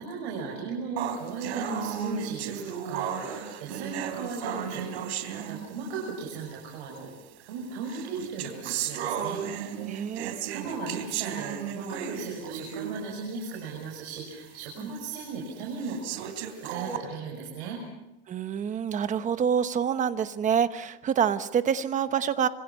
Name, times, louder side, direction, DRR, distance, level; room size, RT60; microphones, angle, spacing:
voice 1, 0.0-9.8 10.5-16.0 16.6-17.8, right 4 dB, 70° right, -1 dB, 6.3 m, -37 dB
sound 1, 1.0-6.1 7.0-7.1 7.9-13.1 13.5-13.6 14.2-14.3 15.0-15.1 15.8-17.0, right 9 dB, 85° right, 3.5 m, -34 dB
voice 2, 9.8-10.4 14.8-14.9 18.3-22.5, right 8 dB, 25° right, 11 dB, 1.1 m, -27 dB
26.5 x 26.0 x 5.6 m, 0.94 s
supercardioid pair, 155°, 32 cm